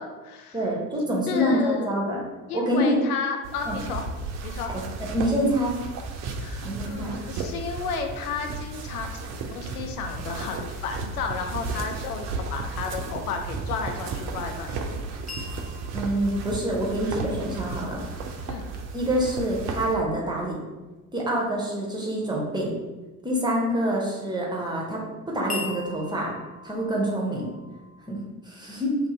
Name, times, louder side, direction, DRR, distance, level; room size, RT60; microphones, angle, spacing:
voice 1, 0.0-0.6 1.3-1.9 2.5-4.1 4.4-4.7 6.4-9.1 9.5-14.7 18.5-18.7, left 5 dB, 75° left, 4 dB, 0.5 m, -32 dB
voice 2, 0.5-2.2 2.5-3.0 3.7-3.8 4.7-4.8 5.1-5.8 6.6-7.2 15.9-18.0 18.9-20.6 21.1-22.7 23.2-25.0 25.3-26.3 26.6-27.5 28.1-29.0, equal, 10° right, -3 dB, 0.9 m, -26 dB
sound 1, 3.4-19.9, right 3 dB, 40° right, 0.5 m, -34 dB
sound 2, 15.3-19.3 25.5-28.2, left 3 dB, 20° left, 0.6 m, -42 dB
2.8 x 2.6 x 4.0 m, 1.2 s
figure-of-eight pair, 55°, 44 cm